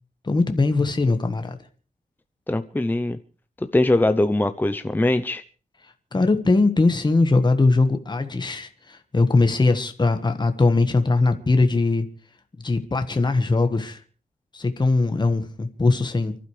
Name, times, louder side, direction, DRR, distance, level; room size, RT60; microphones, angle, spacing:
voice 1, 0.2-1.6 6.1-12.1 12.6-14.0 14.5-16.4, left 3 dB, 30° left, 1.5 m, -20 dB
voice 2, 2.5-3.2 3.7-5.4, left 2 dB, 10° left, 0.7 m, -21 dB
29.5 x 12.0 x 3.3 m
wide cardioid pair, 100°, 16 cm